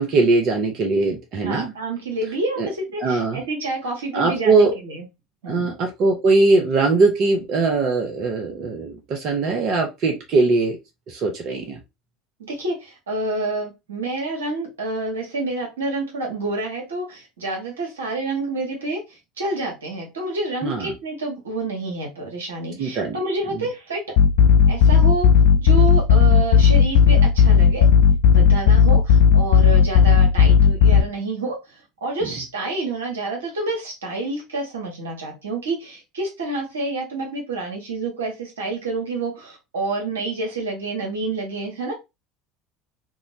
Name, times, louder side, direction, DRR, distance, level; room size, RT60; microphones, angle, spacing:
voice 1, 0.0-1.7 2.6-2.7 3.0-3.4 4.1-4.7 5.5-10.8 11.1-11.8 20.6-20.9 22.8-23.2 32.2-32.3, right 3 dB, 50° right, 2 dB, 0.6 m, -20 dB
voice 2, 1.4-5.0 5.4-5.7 12.4-24.0 24.7-25.3 25.6-27.9 28.3-41.9, right 2 dB, 80° right, 0 dB, 0.9 m, -28 dB
sound 1, 24.2-31.0, left 7 dB, 65° left, 0.3 m, -14 dB
2.7 x 2.1 x 2.6 m, 0.24 s
figure-of-eight pair, 70°, 0 cm